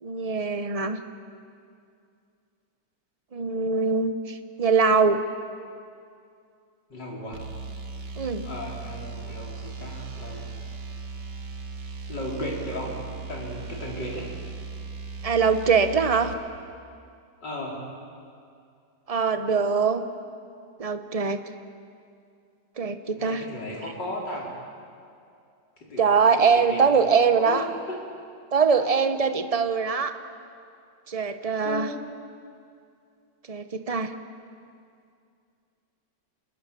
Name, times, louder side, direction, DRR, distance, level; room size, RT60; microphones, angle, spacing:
voice 1, 0.0-1.0 3.3-5.2 8.2-8.5 15.2-16.3 19.1-20.0 20.8-21.4 22.8-23.4 26.0-27.6 28.5-30.2 31.1-31.9 33.5-34.1, right 5 dB, 30° right, 9 dB, 0.7 m, -22 dB
voice 2, 6.9-7.4 8.4-10.5 12.1-13.0 13.3-14.3 17.4-17.8 23.2-24.5 25.8-26.1 26.4-27.0 27.3-27.6 27.9-28.0 28.8-28.9 31.6-32.0, left 1 dB, 75° left, -2 dB, 4.9 m, -35 dB
sound 1, 7.3-16.4, right 4 dB, 75° right, 2.1 m, -38 dB
28.0 x 20.5 x 6.9 m, 2.4 s
omnidirectional pair, 1.9 m